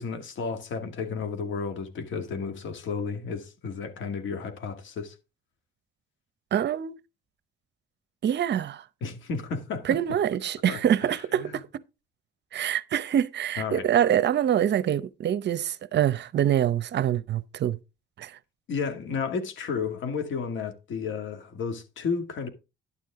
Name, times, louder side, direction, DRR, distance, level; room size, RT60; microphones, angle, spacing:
voice 1, 0.0-5.1 9.0-9.9 10.7-10.8 11.4-11.6 13.6-13.8 18.7-22.5, left 5 dB, 75° left, 2.2 m, -32 dB
voice 2, 6.5-7.0 8.2-8.8 9.8-11.6 12.5-17.8 18.2-18.4, right 10 dB, 60° right, 0.8 m, -25 dB
11.0 x 7.4 x 3.6 m
cardioid pair, 90°, 20 cm